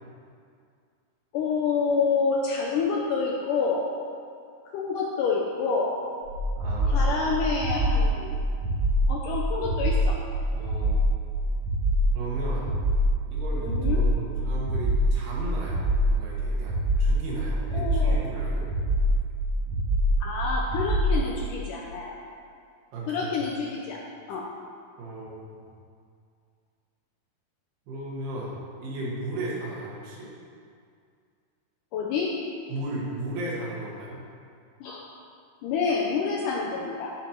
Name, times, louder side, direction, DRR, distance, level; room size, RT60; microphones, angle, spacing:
voice 1, 1.3-3.9 4.7-6.0 6.9-8.4 9.1-10.2 13.6-14.0 17.7-18.2 20.2-22.2 23.1-24.0 24.3-24.5 31.9-32.3 34.8-35.1 35.6-37.1, left 5 dB, 80° left, -2 dB, 1.9 m, -28 dB
sound 1, 6.2-21.2, equal, 45° right, 2.7 m, -25 dB
voice 2, 6.6-7.3 10.5-11.1 12.1-12.7 13.3-18.7 22.9-23.4 25.0-25.5 27.9-30.3 32.7-34.2, right 1 dB, 85° right, -5 dB, 3.6 m, -35 dB
12.0 x 6.0 x 4.5 m, 2.2 s
omnidirectional pair, 4.5 m